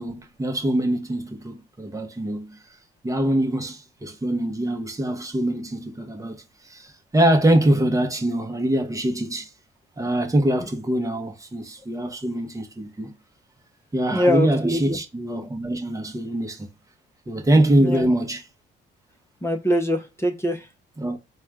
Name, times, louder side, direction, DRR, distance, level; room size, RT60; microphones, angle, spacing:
voice 1, 0.0-2.6 3.0-9.5 10.0-13.1 13.9-16.7 17.3-18.4 21.0-21.2, right 1 dB, 15° right, 1.1 m, -23 dB
voice 2, 14.1-15.0 17.8-18.1 19.4-20.7, equal, 15° left, 0.9 m, -23 dB
4.2 x 2.4 x 3.5 m
cardioid pair, 90°, 20 cm